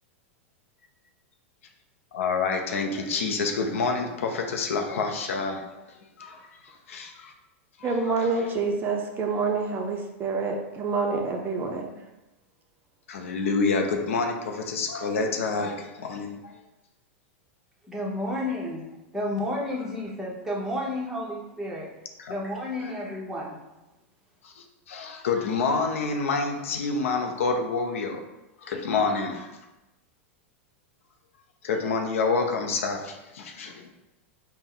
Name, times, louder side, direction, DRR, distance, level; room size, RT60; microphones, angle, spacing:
voice 1, 2.1-5.7 6.2-7.3 7.8-7.9 13.1-16.5 22.2-22.3 22.8-22.9 24.4-28.2 28.6-29.6 31.6-33.9, left 4 dB, 80° left, 0.5 m, -28 dB
voice 2, 7.8-11.9, right 4 dB, 30° right, 0.5 m, -27 dB
voice 3, 17.8-18.9 19.1-21.9 22.3-23.6, left 1 dB, 5° right, 1.0 m, -31 dB
4.2 x 2.1 x 3.7 m
hypercardioid pair, 110°, 7 cm